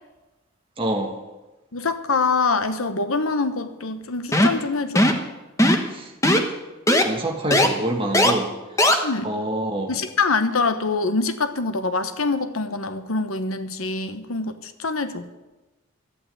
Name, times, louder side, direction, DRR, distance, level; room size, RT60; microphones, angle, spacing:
voice 1, 0.8-1.1 5.9-6.1 7.0-8.5 8.8-10.0, right 1 dB, 25° right, 2 dB, 1.6 m, -26 dB
voice 2, 1.7-5.1 9.0-9.3 9.9-15.3, left 4 dB, 85° left, 10 dB, 1.0 m, -24 dB
sound 1, 4.3-4.6 5.0-5.2 5.6-5.9 6.2-6.4 6.9-7.0 7.5-7.7 8.1-8.3 8.8-8.9, left 1 dB, 15° left, 1.1 m, -17 dB
12.5 x 8.4 x 9.1 m, 1.1 s
head